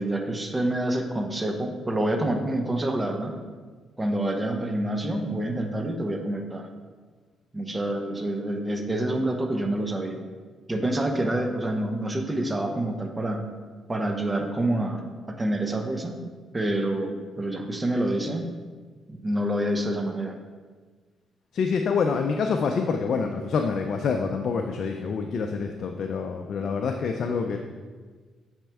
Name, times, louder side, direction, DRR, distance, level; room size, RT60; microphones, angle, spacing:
voice 1, 0.0-3.4 4.0-6.7 7.5-10.2 10.7-13.4 13.9-16.3 16.5-18.5 19.1-20.4, right 1 dB, 20° right, 4 dB, 0.8 m, -27 dB
voice 2, 21.5-27.6, left 5 dB, 60° left, 4 dB, 0.4 m, -26 dB
7.3 x 4.3 x 3.4 m, 1.5 s
cardioid pair, 90°, 0 cm